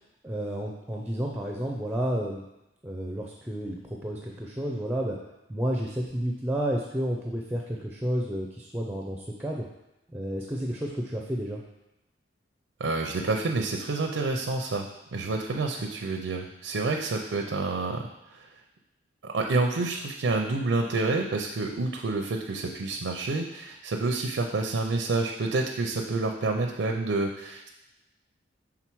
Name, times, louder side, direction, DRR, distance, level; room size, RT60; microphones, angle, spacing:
voice 1, 0.2-2.4 2.8-5.2 5.5-9.7 10.1-11.6, equal, 10° right, 0 dB, 0.5 m, -31 dB
voice 2, 12.8-18.5 19.2-27.7, right 3 dB, 85° right, 2 dB, 0.5 m, -28 dB
5.9 x 3.7 x 4.6 m, 0.93 s
head